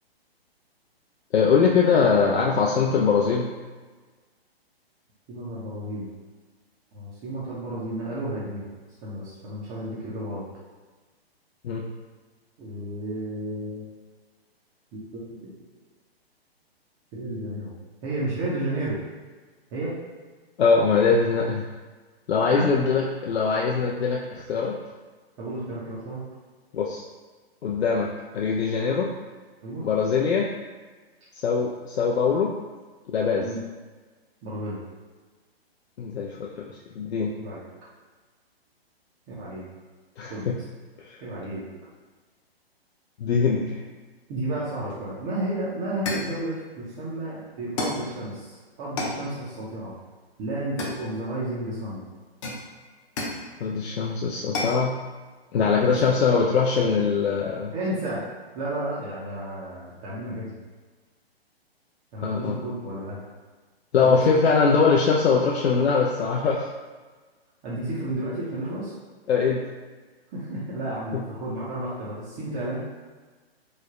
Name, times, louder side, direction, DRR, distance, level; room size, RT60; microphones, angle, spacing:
voice 1, 1.3-3.5 11.6-11.9 20.6-21.6 22.3-24.8 26.7-27.0 27.6-29.1 29.8-30.5 31.4-32.5 33.1-33.5 36.0-36.6 37.0-37.3 40.2-40.6 41.1-41.2 43.2-43.8 53.6-55.0 55.5-57.7 62.2-62.6 63.9-66.7 69.3-69.7 71.1-71.2, left 5 dB, 85° left, -2 dB, 0.5 m, -22 dB
voice 2, 5.3-6.1 6.9-8.7 9.0-10.5 12.6-13.9 14.9-15.5 17.1-17.7 18.0-19.0 19.7-20.0 22.5-22.7 25.4-26.2 29.6-29.8 33.4-33.6 34.4-34.8 37.4-37.6 39.3-39.6 40.3-40.5 41.2-41.6 44.3-49.9 50.4-52.0 55.5-56.3 57.7-58.3 58.5-60.6 62.1-63.2 64.0-64.4 67.6-68.9 70.3-72.8, right 1 dB, 20° right, -9 dB, 0.4 m, -32 dB
sound 1, 45.4-45.5 46.1-46.4 47.8-48.1 49.0-49.3 50.8-51.4 52.4-53.5 54.5-54.8, left 2 dB, 30° left, 0.5 m, -31 dB
3.2 x 2.0 x 3.5 m, 1.3 s
hypercardioid pair, 135°, 31 cm